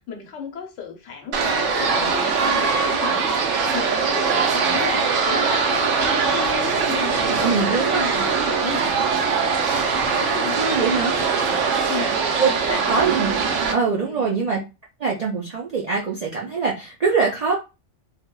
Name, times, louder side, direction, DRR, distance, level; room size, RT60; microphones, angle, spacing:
voice 1, 0.1-9.4 10.1-11.4 11.9-12.2 12.6-12.8 14.0-14.4, left 6 dB, 85° left, 1.0 m, -34 dB
sound 1, 1.3-13.7, right 5 dB, 80° right, 0.9 m, -21 dB
voice 2, 7.3-8.3 10.6-11.2 12.4-12.5 12.9-13.3 13.7-14.6 15.0-17.5, right 5 dB, 60° right, 0.4 m, -23 dB
3.2 x 2.1 x 2.2 m
omnidirectional pair, 1.2 m